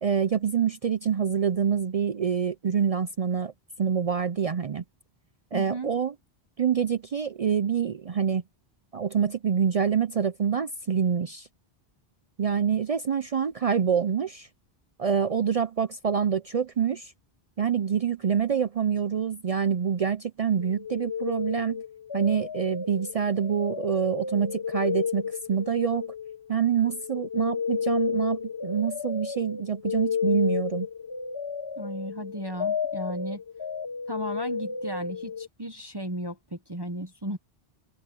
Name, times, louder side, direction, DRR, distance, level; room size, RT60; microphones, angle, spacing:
voice 1, 0.0-3.5 3.8-4.8 5.5-6.1 6.6-8.4 8.9-11.5 12.4-14.5 15.0-17.1 17.6-21.8 22.1-26.1 26.5-30.9, right 7 dB, 50° right, 0.5 m, -26 dB
voice 2, 5.5-5.9 31.8-33.4 34.1-37.4, right 1 dB, 25° right, 1.1 m, -35 dB
sound 1, 20.6-26.6 26.8-35.5, left 6 dB, 30° left, 0.7 m, -32 dB
omnidirectional pair, 1.0 m